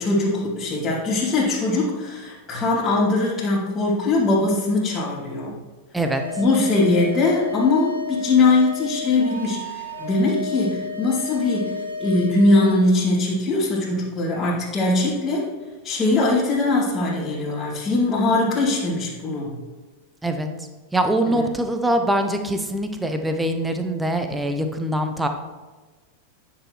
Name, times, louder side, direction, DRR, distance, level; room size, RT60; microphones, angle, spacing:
voice 1, 0.0-5.6 6.4-15.5 15.8-19.6 21.3-21.4, left 2 dB, 10° left, -12 dB, 2.4 m, -21 dB
sound 1, 6.0-12.7, left 3 dB, 85° left, 1.2 m, -32 dB
voice 2, 20.9-25.3, right 1 dB, 5° right, 6 dB, 0.7 m, -23 dB
10.5 x 6.1 x 3.1 m, 1.3 s
figure-of-eight pair, 90°, 0 cm